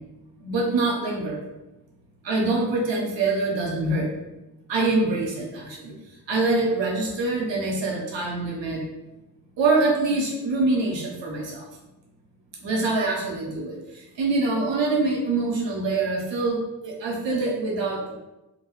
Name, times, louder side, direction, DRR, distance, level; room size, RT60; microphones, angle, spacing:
voice 1, 0.4-1.4 2.2-4.1 4.7-5.9 6.3-8.8 9.6-11.6 12.6-13.8 14.2-18.2, right 3 dB, 70° right, -2 dB, 1.0 m, -24 dB
2.6 x 2.3 x 3.1 m, 0.99 s
supercardioid pair, 40°, 46 cm